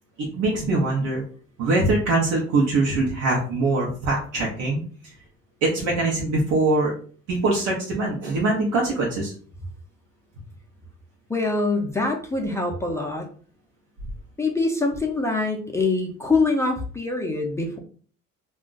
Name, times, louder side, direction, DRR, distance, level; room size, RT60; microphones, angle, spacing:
voice 1, 0.2-1.2 1.6-4.8 5.6-6.9 7.3-9.3, right 2 dB, 80° right, -3 dB, 0.9 m, -23 dB
voice 2, 11.3-13.3 14.4-17.8, left 3 dB, 10° left, 0 dB, 0.4 m, -24 dB
2.4 x 2.1 x 3.8 m, 0.43 s
cardioid pair, 120°, 30 cm